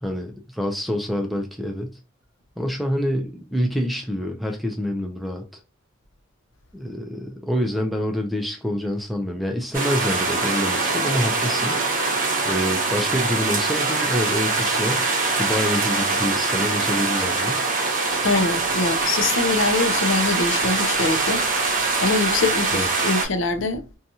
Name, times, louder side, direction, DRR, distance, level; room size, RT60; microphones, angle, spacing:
voice 1, 0.0-2.0 2.6-5.6 6.7-11.8 12.4-15.0 15.4-17.6 22.7-22.9, equal, ahead, 0.3 m, -26 dB
sound 1, 9.7-23.2, right 3 dB, 40° right, 0.7 m, -23 dB
voice 2, 18.2-21.5 22.0-24.0, left 3 dB, 70° left, 0.5 m, -23 dB
2.7 x 2.3 x 2.7 m
head